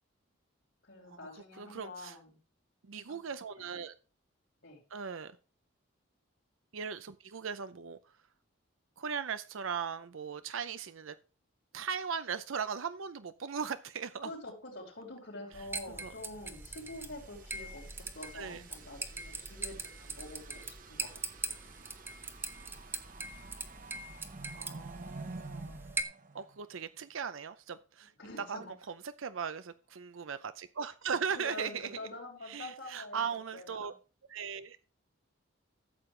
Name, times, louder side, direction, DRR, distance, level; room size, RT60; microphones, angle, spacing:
voice 1, 0.8-2.4 3.6-3.7 4.6-4.8 14.2-21.6 28.2-28.7 31.4-33.2 33.5-33.9, left 2 dB, 60° left, -5 dB, 4.1 m, -46 dB
voice 2, 1.6-2.1 2.8-3.9 4.9-5.3 6.7-8.1 9.0-11.2 11.7-14.3 15.9-16.1 18.3-18.6 24.5-25.8 26.3-28.1 28.4-31.9 32.5-33.9 34.3-34.8, right 6 dB, 75° right, 12 dB, 0.6 m, -38 dB
sound 1, 15.5-26.0, right 3 dB, 10° right, 0.8 m, -42 dB
sound 2, 16.3-27.0, right 3 dB, 40° right, 0.9 m, -50 dB
13.5 x 7.9 x 3.3 m, 0.36 s
head